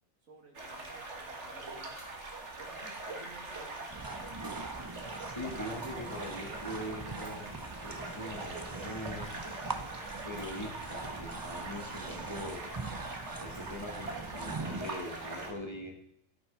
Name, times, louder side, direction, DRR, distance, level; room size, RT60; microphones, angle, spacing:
voice 1, 0.2-1.9 2.6-4.3, right 3 dB, 85° right, 0 dB, 2.6 m, -55 dB
sound 1, 0.5-15.5, right 2 dB, 60° right, 2.1 m, -42 dB
sound 2, 2.0-2.2 3.1-3.2 4.4-4.7 5.0-5.2 5.8-6.1 6.6-6.7 7.1-7.5 8.0-9.1 10.2-10.9 11.4-11.5 13.5-13.9 14.8-15.0, left 1 dB, 55° left, 3.7 m, -61 dB
sound 3, 3.9-14.9, right 3 dB, 20° right, 0.6 m, -43 dB
voice 2, 5.2-9.6 10.2-12.6 13.4-16.0, left 1 dB, 20° left, 3 dB, 1.8 m, -42 dB
13.5 x 8.7 x 5.3 m, 0.72 s
omnidirectional pair, 1.4 m